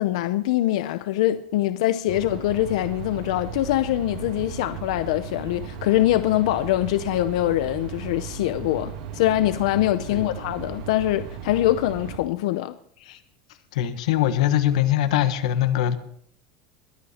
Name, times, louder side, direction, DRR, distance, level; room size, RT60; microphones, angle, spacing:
voice 1, 0.0-12.7, left 14 dB, 70° left, 0.6 m, -23 dB
sound 1, 2.1-12.2, right 7 dB, 70° right, 2.0 m, -36 dB
voice 2, 13.7-16.0, left 11 dB, 90° left, 1.3 m, -22 dB
22.0 x 8.6 x 4.2 m
supercardioid pair, 175°, 4 cm